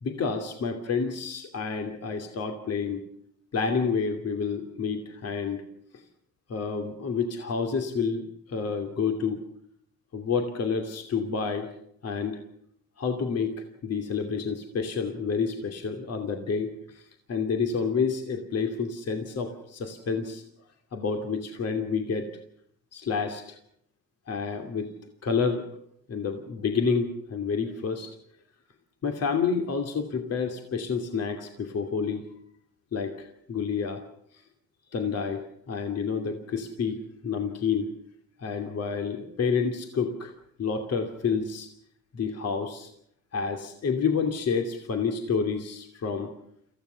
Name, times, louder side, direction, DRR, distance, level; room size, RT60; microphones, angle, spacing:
voice 1, 0.0-3.0 3.5-5.6 6.5-8.2 8.5-9.5 10.1-11.7 12.0-12.4 13.0-17.0 17.3-20.4 20.9-22.3 22.9-23.6 24.3-24.9 25.2-25.7 26.1-28.2 29.0-32.3 32.9-34.0 34.9-37.9 38.4-40.3 40.6-41.7 42.1-42.9 43.3-46.3, left 5 dB, 55° left, 4 dB, 2.7 m, -29 dB
26.5 x 15.5 x 7.0 m, 0.71 s
cardioid pair, 90°, 30 cm